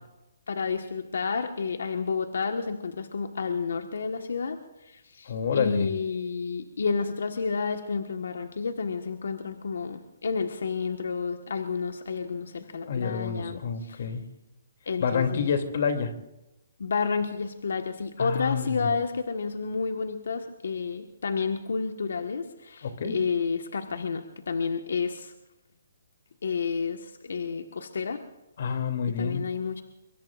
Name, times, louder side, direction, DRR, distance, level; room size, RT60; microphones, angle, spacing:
voice 1, 0.5-14.1 14.9-15.5 16.8-25.3 26.4-28.2 29.2-29.8, left 5 dB, 75° left, 6 dB, 1.4 m, -30 dB
voice 2, 5.3-5.9 12.8-14.2 15.0-16.1 18.2-18.9 22.8-23.1 28.6-29.4, left 6 dB, 55° left, 6 dB, 2.8 m, -28 dB
24.0 x 22.5 x 2.5 m, 0.95 s
hypercardioid pair, 155°, 0 cm